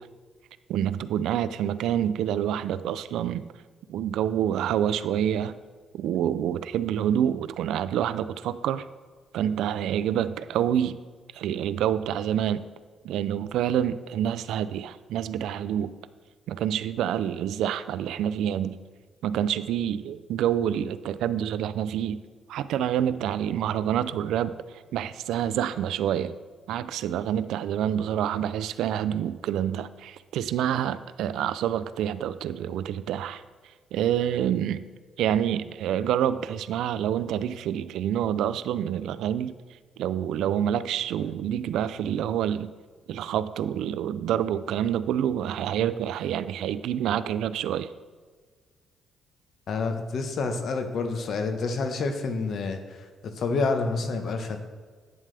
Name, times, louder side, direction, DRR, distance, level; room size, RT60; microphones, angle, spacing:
voice 1, 0.7-3.5 3.9-5.6 5.9-8.8 9.3-11.0 11.3-12.6 13.0-15.9 16.5-18.8 19.2-22.2 22.5-24.5 24.9-26.3 26.7-33.4 33.9-34.8 35.2-39.5 40.0-42.7 43.1-47.9, right 10 dB, 85° right, 14 dB, 0.4 m, -27 dB
voice 2, 49.7-53.0 53.3-54.6, left 4 dB, 60° left, 6 dB, 1.2 m, -28 dB
11.0 x 8.7 x 3.4 m, 1.5 s
cardioid pair, 90°, 0 cm